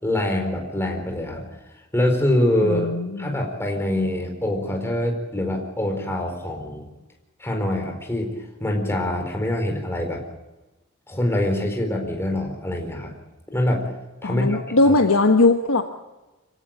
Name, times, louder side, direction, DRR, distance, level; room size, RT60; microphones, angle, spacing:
voice 1, 0.0-1.5 1.9-2.9 3.2-6.9 7.4-8.3 8.6-10.2 11.1-13.1 13.5-13.9 14.2-15.0, left 1 dB, 10° left, 2 dB, 4.5 m, -24 dB
voice 2, 2.6-3.3 14.2-15.8, left 2 dB, 70° left, 4 dB, 1.4 m, -19 dB
25.5 x 17.0 x 8.9 m, 1.1 s
head